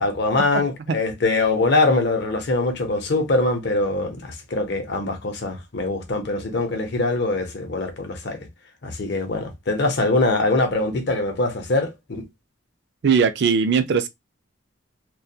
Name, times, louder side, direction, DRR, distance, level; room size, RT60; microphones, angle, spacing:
voice 1, 0.0-8.5 8.8-12.2, left 2 dB, 55° left, 0.7 m, -23 dB
voice 2, 13.0-14.1, right 6 dB, 55° right, 0.4 m, -19 dB
2.2 x 2.2 x 2.7 m
head